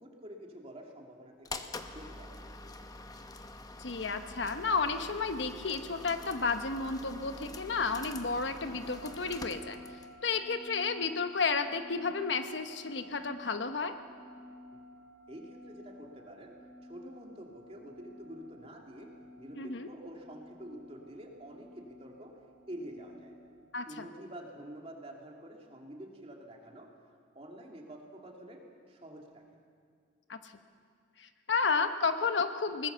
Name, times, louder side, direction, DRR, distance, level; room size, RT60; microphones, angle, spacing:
voice 1, 0.0-2.4 14.7-14.8 15.3-16.5 16.8-22.3 22.7-23.4 23.9-26.9 27.3-29.4, right 1 dB, 35° right, 0 dB, 2.7 m, -48 dB
sound 1, 1.4-10.2, left 2 dB, 20° left, 0.9 m, -46 dB
voice 2, 3.8-9.8 10.2-14.0 19.6-19.9 23.7-24.1 30.3-30.5 31.2-32.9, left 4 dB, 75° left, 8 dB, 1.1 m, -32 dB
sound 2, 5.7-23.7, left 1 dB, 55° right, 5.5 m, -53 dB
21.5 x 19.5 x 6.9 m, 2.2 s
head